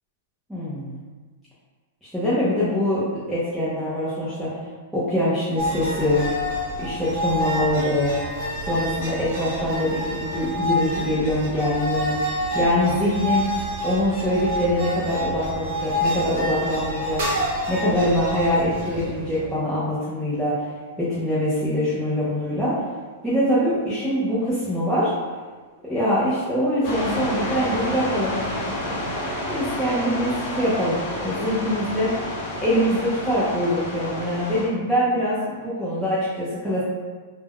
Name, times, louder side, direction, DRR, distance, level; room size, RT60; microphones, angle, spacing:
voice 1, 0.5-0.9 2.1-4.5 4.9-6.3 6.8-8.1 8.6-13.5 13.8-17.2 17.7-20.5 21.0-22.7 23.2-25.1 25.9-28.4 29.1-32.1 32.6-36.8, equal, ahead, -12 dB, 0.5 m, -24 dB
sound 1, 5.6-19.6, equal, 50° right, 0.8 m, -28 dB
sound 2, 26.8-34.7, left 1 dB, 40° left, 0.6 m, -30 dB
2.2 x 2.1 x 3.4 m, 1.4 s
supercardioid pair, 160°, 0 cm